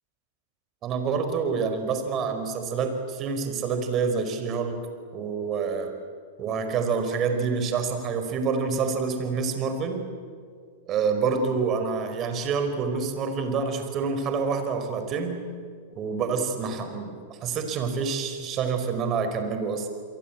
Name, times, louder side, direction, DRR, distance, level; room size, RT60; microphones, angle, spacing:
voice 1, 0.8-4.8 5.1-5.9 6.4-10.0 10.9-15.4 15.9-19.9, right 5 dB, 35° right, 7 dB, 5.0 m, -27 dB
29.0 x 23.0 x 8.9 m, 2.1 s
hypercardioid pair, 105°, 0 cm